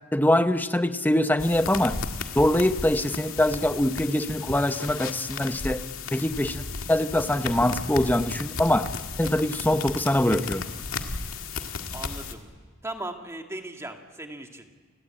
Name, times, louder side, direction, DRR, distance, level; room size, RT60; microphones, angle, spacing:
voice 1, 0.1-2.0 2.4-5.8 6.1-6.6 6.9-8.9 9.2-10.6, left 1 dB, 10° left, 10 dB, 0.8 m, -23 dB
sound 1, 1.4-12.3, left 4 dB, 85° left, 1.9 m, -34 dB
voice 2, 11.9-12.5 12.8-14.9, right 1 dB, 15° right, 4 dB, 2.0 m, -38 dB
29.5 x 20.0 x 8.8 m, 1.5 s
head